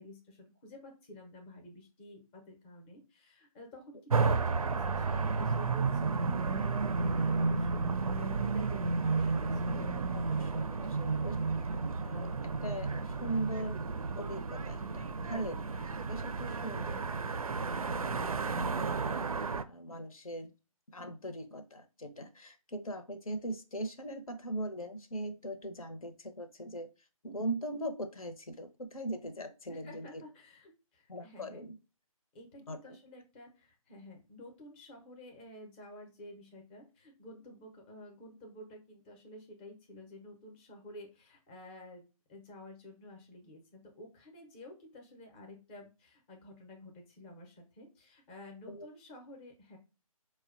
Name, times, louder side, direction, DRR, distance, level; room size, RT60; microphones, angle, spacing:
voice 1, 0.0-9.8 10.8-10.9 16.5-17.4 29.7-31.6 32.3-42.0 42.3-49.8, left 1 dB, 15° left, 2 dB, 0.6 m, -51 dB
sound 1, 4.1-19.6, right 4 dB, 75° right, 0.4 m, -32 dB
voice 2, 10.1-11.4 11.8-13.8 14.2-17.0 18.0-20.5 20.9-26.9 27.2-30.2 31.1-31.8 32.7-33.0 48.7-48.9, right 1 dB, 70° left, 9 dB, 0.7 m, -40 dB
4.3 x 2.2 x 2.4 m, 0.31 s
figure-of-eight pair, 145°, 19 cm